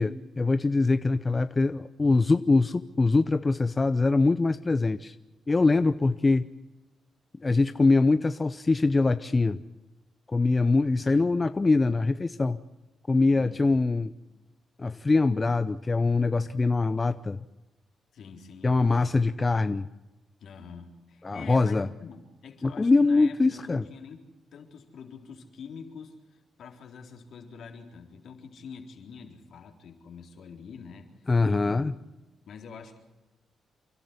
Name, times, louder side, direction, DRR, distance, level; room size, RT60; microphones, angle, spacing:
voice 1, 0.0-5.2 5.5-6.5 7.4-9.6 10.3-12.6 13.1-14.1 14.8-17.4 18.6-19.9 21.2-21.9 22.6-23.8 31.3-31.9, left 3 dB, 30° left, 12 dB, 0.7 m, -23 dB
voice 2, 13.3-13.9 18.1-19.0 20.4-24.2 24.5-31.3 31.6-32.1 32.5-33.0, left 6 dB, 70° left, 3 dB, 3.9 m, -46 dB
28.5 x 12.5 x 9.8 m, 1.1 s
cardioid pair, 75°, 0 cm